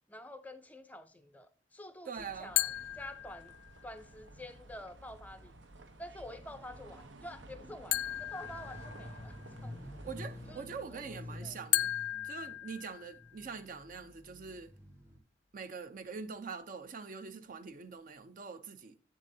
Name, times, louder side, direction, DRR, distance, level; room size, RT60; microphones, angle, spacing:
voice 1, 0.1-3.5 3.8-5.5 6.0-9.8 10.5-10.6 10.9-11.6, left 1 dB, 10° left, 0.4 m, -48 dB
voice 2, 2.1-2.5 10.0-11.9 12.2-14.7 15.5-19.0, right 5 dB, 45° right, 0.5 m, -44 dB
sound 1, 2.1-10.6, right 2 dB, 80° right, 0.9 m, -53 dB
sound 2, 2.6-3.9 7.9-9.4 11.7-13.4, left 15 dB, 90° left, 0.4 m, -35 dB
sound 3, 8.1-15.2, left 1 dB, 15° right, 1.2 m, -49 dB
7.4 x 7.2 x 2.6 m
head